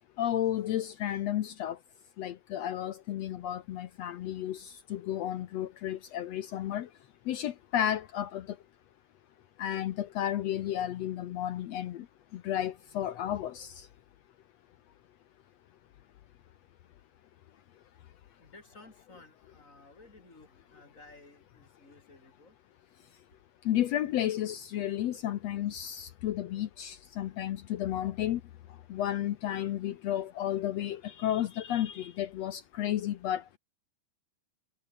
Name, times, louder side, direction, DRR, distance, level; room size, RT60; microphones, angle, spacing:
voice 1, 0.2-1.8 2.2-6.9 7.3-8.4 9.6-12.0 12.3-13.8 23.6-28.4 28.9-33.6, left 11 dB, 90° left, 1.5 m, -32 dB
voice 2, 17.9-22.6, left 2 dB, 20° left, 6.2 m, -56 dB
omnidirectional pair, 4.3 m